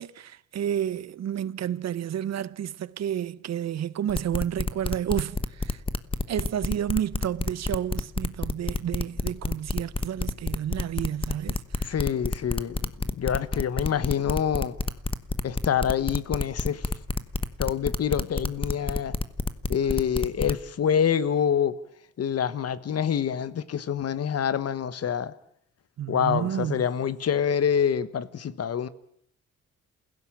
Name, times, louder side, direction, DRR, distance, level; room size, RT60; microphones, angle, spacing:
voice 1, 0.0-5.8 6.3-11.9 26.0-26.8, right 10 dB, 55° right, 0.9 m, -30 dB
sound 1, 4.1-20.5, left 3 dB, 15° left, 1.1 m, -28 dB
voice 2, 11.8-12.9 13.2-14.8 15.4-16.8 17.6-19.1 19.7-21.8 22.2-25.3 26.1-28.9, left 8 dB, 50° left, 1.2 m, -26 dB
28.0 x 16.5 x 8.7 m
cardioid pair, 110°, 31 cm